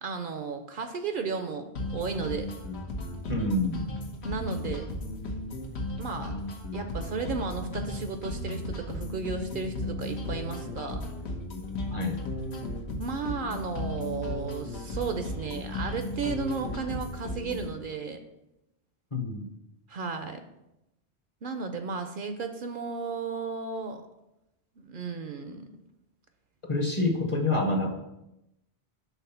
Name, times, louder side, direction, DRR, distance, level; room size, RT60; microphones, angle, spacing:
voice 1, 0.0-2.5 4.2-4.9 6.0-6.3 6.7-11.0 13.0-18.2 19.9-20.4 21.4-24.0 24.8-25.6, right 4 dB, 60° right, 7 dB, 0.6 m, -34 dB
sound 1, 1.8-17.8, left 1 dB, 85° left, 1.2 m, -35 dB
voice 2, 3.3-3.9 11.9-12.2 19.1-19.5 26.7-27.9, left 2 dB, 35° left, 2 dB, 0.7 m, -27 dB
5.8 x 3.7 x 5.6 m, 0.89 s
omnidirectional pair, 1.1 m